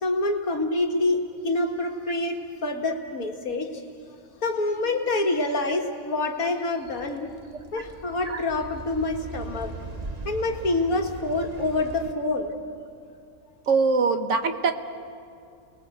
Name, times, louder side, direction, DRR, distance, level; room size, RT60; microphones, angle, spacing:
voice 1, 0.0-3.7 4.4-7.3 7.7-9.7 10.3-12.5, left 2 dB, 85° left, 3 dB, 2.2 m, -26 dB
sound 1, 6.9-12.1, right 3 dB, 30° right, 1.2 m, -40 dB
voice 2, 13.7-14.7, right 4 dB, 60° right, 8 dB, 1.5 m, -23 dB
29.5 x 20.0 x 8.0 m, 2.5 s
omnidirectional pair, 1.5 m